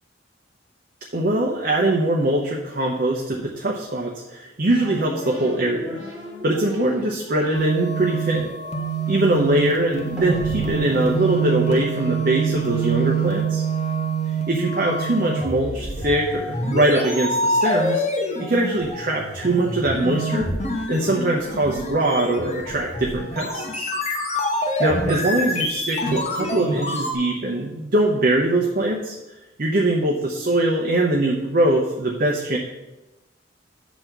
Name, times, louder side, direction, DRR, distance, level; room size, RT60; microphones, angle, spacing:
voice 1, 1.1-6.0 6.4-8.5 9.1-13.6 14.3-18.0 18.4-20.5 20.9-23.9 24.8-29.2 29.6-32.6, right 1 dB, 50° right, 0 dB, 0.8 m, -22 dB
sound 1, 4.7-12.2, equal, 5° right, 2.3 m, -36 dB
sound 2, 7.5-27.1, right 2 dB, 35° left, 1.2 m, -26 dB
8.0 x 4.1 x 6.0 m, 1.0 s
head